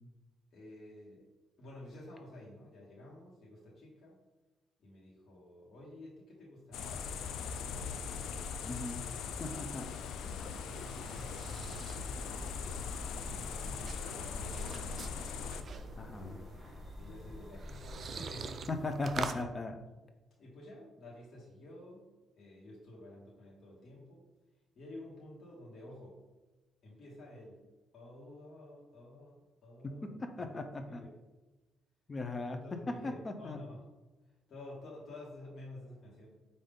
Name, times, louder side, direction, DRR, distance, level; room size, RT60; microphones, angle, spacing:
voice 1, 0.5-1.3 1.6-4.2 4.8-8.5 10.6-12.7 13.1-15.8 17.0-18.7 20.4-24.2 24.7-26.2 26.8-31.2 32.5-33.9 34.5-36.5, left 1 dB, 55° left, -5 dB, 1.4 m, -51 dB
sound 1, 6.7-15.6, left 6 dB, 80° left, 0.4 m, -40 dB
voice 2, 8.6-9.0 9.4-9.9 16.0-16.4 18.7-19.8 29.8-30.0 30.4-31.1 32.1-32.6 33.0-33.6, left 2 dB, 30° left, 6 dB, 0.6 m, -38 dB
sound 2, 10.1-19.4, right 5 dB, 50° right, 0.4 m, -46 dB
sound 3, 11.5-17.9, left 1 dB, ahead, 1.2 m, -49 dB
5.2 x 2.7 x 3.6 m, 1.1 s
cardioid pair, 95°, 0 cm